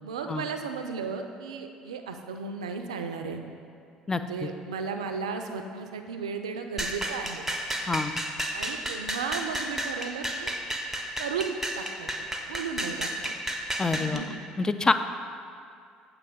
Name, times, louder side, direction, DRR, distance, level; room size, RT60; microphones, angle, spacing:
voice 1, 0.0-3.4 4.1-7.5 8.5-10.5 11.2-12.1 12.4-13.4 13.9-14.4, right 5 dB, 85° right, 6 dB, 0.3 m, -35 dB
voice 2, 4.1-4.5 7.9-8.1 13.8-14.2 14.6-14.9, left 3 dB, 20° left, 10 dB, 0.3 m, -26 dB
sound 1, 6.8-14.2, right 1 dB, 10° right, 0.7 m, -32 dB
7.8 x 2.9 x 5.1 m, 2.3 s
hypercardioid pair, 60°, 3 cm